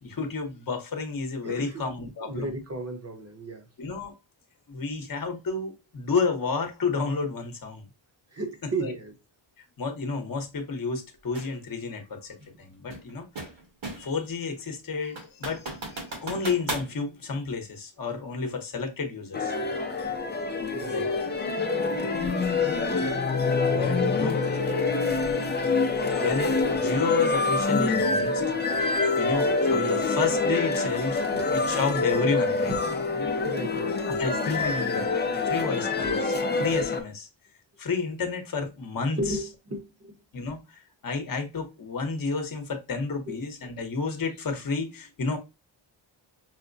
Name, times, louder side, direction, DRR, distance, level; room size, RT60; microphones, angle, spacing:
voice 1, 0.0-2.5 3.8-4.1 4.7-7.8 8.8-8.9 9.6-13.3 14.0-19.5 20.8-21.1 23.7-24.9 25.5-28.8 29.2-32.7 34.1-37.3 37.8-39.4 40.3-45.4, left 4 dB, 40° left, 0.9 m, -31 dB
voice 2, 1.4-1.8 2.2-3.7 8.3-9.1 20.7-21.0 26.0-26.1 28.9-29.0 31.3-31.5 32.7-32.9 33.4-34.0 39.2-40.2 43.3-43.4, right 2 dB, 30° right, 0.9 m, -34 dB
sound 1, 11.3-11.6 12.9-14.2 14.6-14.7 15.2-16.9, right 2 dB, 65° right, 1.5 m, -36 dB
sound 2, 19.3-37.0, left 3 dB, 20° left, 0.5 m, -26 dB
5.7 x 2.1 x 2.5 m
wide cardioid pair, 130°, 50 cm